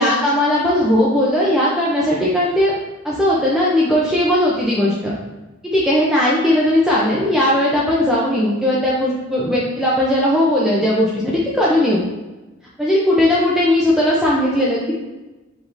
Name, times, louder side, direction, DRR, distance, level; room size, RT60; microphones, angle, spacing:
voice 1, 0.0-2.7 3.0-5.1 5.6-12.0 12.8-14.9, left 1 dB, ahead, -6 dB, 0.5 m, -17 dB
5.0 x 3.7 x 2.6 m, 1.1 s
head